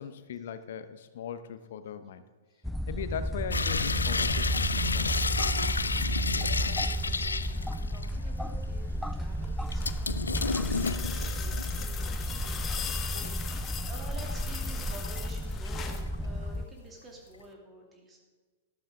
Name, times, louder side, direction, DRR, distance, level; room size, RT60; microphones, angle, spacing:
voice 1, 0.0-2.2 2.9-5.2, left 8 dB, 60° left, 12 dB, 0.8 m, -39 dB
sound 1, 2.6-16.7, equal, ahead, 0.4 m, -33 dB
sound 2, 3.5-8.3 8.6-8.7 9.7-11.9 12.3-13.6 14.1-15.3 15.7-16.2 16.5-16.6, left 4 dB, 80° left, 0.5 m, -31 dB
voice 2, 6.3-18.2, right 2 dB, 20° right, 0 dB, 2.5 m, -50 dB
sound 3, 9.3-16.1 17.4-17.5, left 7 dB, 25° left, 1.2 m, -40 dB
13.0 x 12.0 x 3.6 m, 1.4 s
figure-of-eight pair, 100°, 0 cm